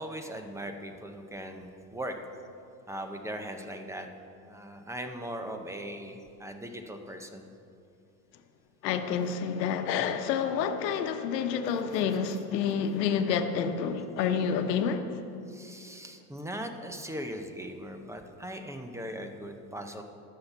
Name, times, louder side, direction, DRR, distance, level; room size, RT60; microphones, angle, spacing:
voice 1, 0.0-2.2 2.9-4.1 4.4-7.5 15.5-20.0, right 1 dB, 5° right, 6 dB, 0.6 m, -39 dB
voice 2, 8.8-15.1, left 7 dB, 85° left, 8 dB, 1.0 m, -28 dB
11.5 x 5.8 x 7.1 m, 2.6 s
supercardioid pair, 115°, 48 cm